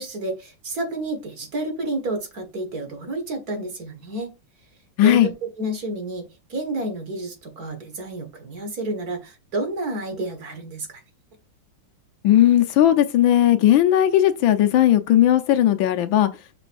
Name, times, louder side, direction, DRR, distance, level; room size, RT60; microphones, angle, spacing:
voice 1, 0.0-4.3 5.0-11.0, right 1 dB, 50° right, 2.1 m, -30 dB
voice 2, 5.0-5.3 12.2-16.3, left 12 dB, 85° left, 1.6 m, -17 dB
6.5 x 6.3 x 2.5 m
omnidirectional pair, 2.1 m